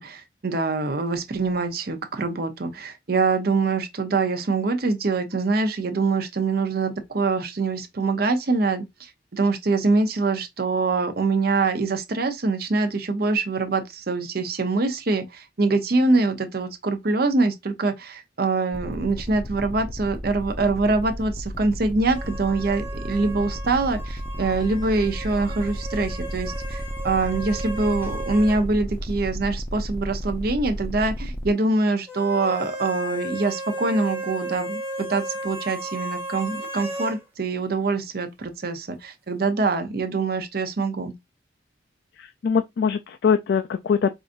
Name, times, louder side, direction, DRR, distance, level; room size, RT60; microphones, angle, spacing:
voice 1, 0.0-41.1, right 3 dB, 55° right, 0.7 m, -24 dB
sound 1, 18.7-31.5, equal, 10° left, 0.6 m, -33 dB
sound 2, 22.1-28.6 28.9-29.0 32.1-37.2, right 1 dB, 10° right, 1.1 m, -35 dB
voice 2, 42.2-44.1, left 6 dB, 60° left, 0.3 m, -22 dB
4.7 x 2.6 x 2.5 m
head